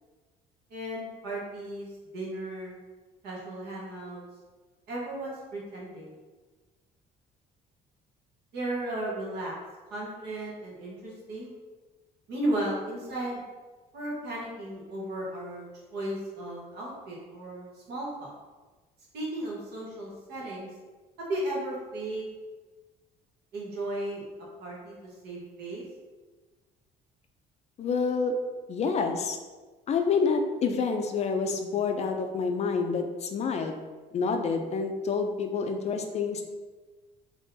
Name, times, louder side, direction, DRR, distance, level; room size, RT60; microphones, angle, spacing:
voice 1, 0.7-1.9 2.1-2.7 3.2-4.2 4.9-6.2 8.5-9.5 9.9-11.5 12.3-13.4 13.9-18.3 19.1-20.7 21.3-22.2 23.5-24.2 24.6-25.8, right 1 dB, 75° right, -4 dB, 1.2 m, -35 dB
voice 2, 27.8-28.3 28.7-29.4 29.9-33.8 34.1-36.4, left 5 dB, 40° left, 5 dB, 0.4 m, -28 dB
3.6 x 2.9 x 2.7 m, 1.3 s
cardioid pair, 110°, 17 cm